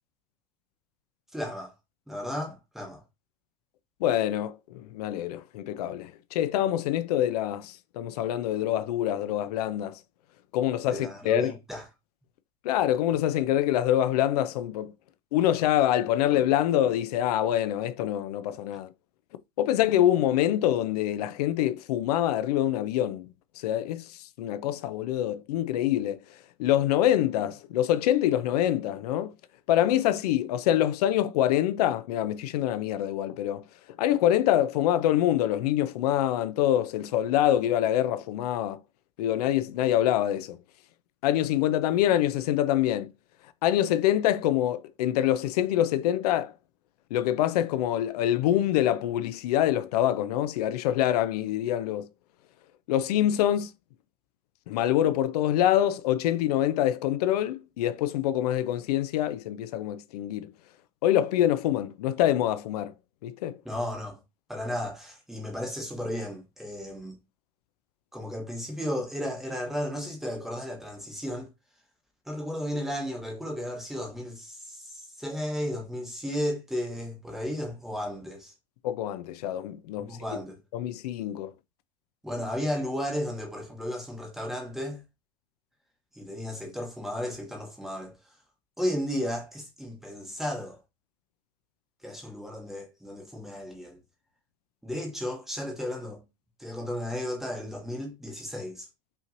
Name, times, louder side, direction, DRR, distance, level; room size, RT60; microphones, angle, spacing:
voice 1, 1.3-1.7 2.1-3.0 10.9-11.8 63.6-64.2 64.5-67.2 68.1-71.5 72.3-78.5 80.0-80.6 82.2-85.0 86.1-88.2 88.8-90.8 92.0-94.0 94.8-96.2 96.6-98.9, equal, ahead, 0.9 m, -34 dB
voice 2, 4.0-10.0 10.5-11.5 12.6-14.9 15.3-18.9 19.6-23.3 23.6-26.2 26.6-29.3 29.7-33.6 34.0-38.8 39.2-40.6 41.2-43.1 43.6-46.5 47.1-52.1 52.9-53.7 54.7-60.5 61.0-62.9 63.2-63.6 78.8-80.2 80.7-81.5, left 12 dB, 80° left, 0.4 m, -25 dB
5.6 x 2.9 x 2.5 m
supercardioid pair, 175°, 20 cm